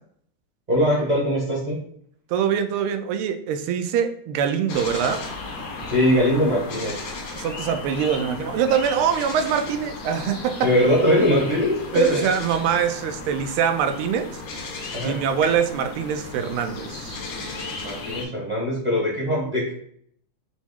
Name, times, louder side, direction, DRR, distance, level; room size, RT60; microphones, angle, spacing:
voice 1, 0.7-1.8 5.9-7.1 10.6-12.3 14.9-15.2 17.8-19.7, equal, 35° right, -3 dB, 0.7 m, -21 dB
voice 2, 2.3-5.2 7.3-10.7 11.9-14.4 15.0-17.2, right 8 dB, 85° right, 8 dB, 1.5 m, -24 dB
sound 1, 4.7-18.2, left 3 dB, 65° left, 0.9 m, -35 dB
6.0 x 2.0 x 3.6 m, 0.63 s
omnidirectional pair, 2.3 m